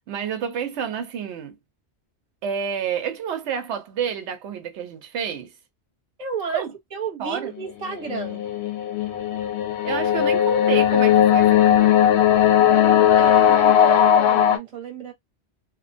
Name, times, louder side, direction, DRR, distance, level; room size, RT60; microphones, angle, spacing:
voice 1, 0.1-1.6 2.4-5.5 6.5-6.7 7.2-7.5 9.8-12.3, right 7 dB, 85° right, 0.9 m, -29 dB
voice 2, 6.2-6.6 6.9-8.4 12.6-15.1, right 5 dB, 40° right, 0.8 m, -32 dB
sound 1, 7.9-14.6, left 10 dB, 70° left, 0.9 m, -17 dB
2.5 x 2.1 x 2.4 m
omnidirectional pair, 1.2 m